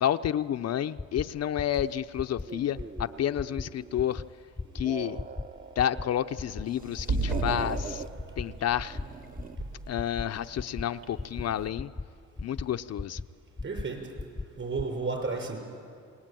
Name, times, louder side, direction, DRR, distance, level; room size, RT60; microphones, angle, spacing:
voice 1, 0.0-4.2 4.7-5.2 5.8-8.0 8.4-9.0 9.9-11.9 12.4-13.2, left 10 dB, 55° left, 9 dB, 0.7 m, -30 dB
sound 1, 1.0-1.2 1.6-1.8 2.2-2.4 2.8-3.0 3.4-3.6 4.0-4.2 4.6-4.8 5.2-5.4 5.8-6.0 6.4-6.6 7.0-7.2 7.6-7.8 8.2-8.5 8.8-9.0 9.4-9.6 10.0-10.2 10.6-10.8 11.2-11.4 11.8-12.0 12.4-12.6 13.0-13.2 13.6-13.8 14.2-14.4 14.8-14.9, left 3 dB, 10° left, 0.8 m, -35 dB
sound 2, 2.5-4.2 4.7-6.3 6.7-8.1 8.9-9.7, right 5 dB, 30° right, 1.0 m, -42 dB
sound 3, 6.3-11.7, right 3 dB, 80° right, 4.0 m, -36 dB
voice 2, 13.6-14.1 14.6-15.6, right 4 dB, 45° right, 3 dB, 6.8 m, -32 dB
28.0 x 20.5 x 9.2 m, 2.4 s
cardioid pair, 90°, 30 cm